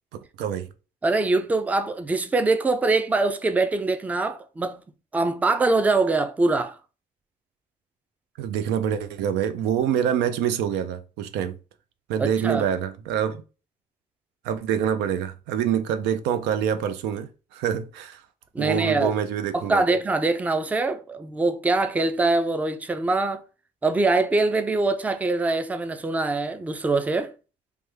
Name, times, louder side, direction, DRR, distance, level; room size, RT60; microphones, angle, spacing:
voice 1, 0.4-0.7 8.4-11.5 12.1-13.4 14.4-18.2 18.6-19.8, right 9 dB, 85° right, 0.4 m, -26 dB
voice 2, 1.0-4.8 5.1-6.8 12.2-12.6 18.5-19.1 19.5-23.4 23.8-27.3, right 3 dB, 10° right, 0.3 m, -23 dB
3.3 x 2.2 x 3.2 m
cardioid pair, 110°, 17 cm